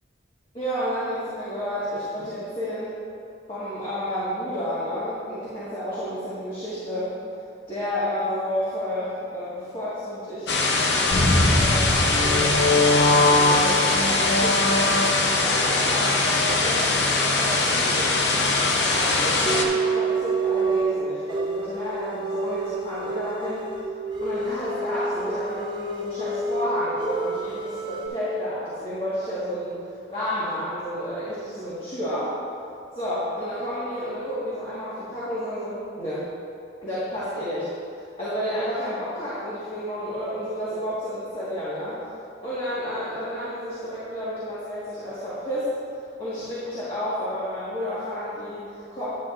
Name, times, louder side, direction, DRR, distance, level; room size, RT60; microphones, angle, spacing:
voice 1, 0.5-2.9 3.5-7.1 7.7-10.6 11.1-14.7 15.2-18.4 18.9-23.7 24.2-29.8 30.1-32.3 32.9-36.3 36.8-37.7 38.2-42.0 42.4-45.7 46.2-49.1, equal, 30° left, -11 dB, 1.6 m, -31 dB
sound 1, 10.5-19.6, left 3 dB, 70° left, 0.8 m, -22 dB
sound 2, 11.1-15.5, left 2 dB, 90° left, 1.5 m, -22 dB
sound 3, 19.4-21.0 21.3-26.7 27.0-28.1, right 3 dB, 25° right, 0.7 m, -28 dB
9.7 x 9.4 x 2.5 m, 2.5 s
head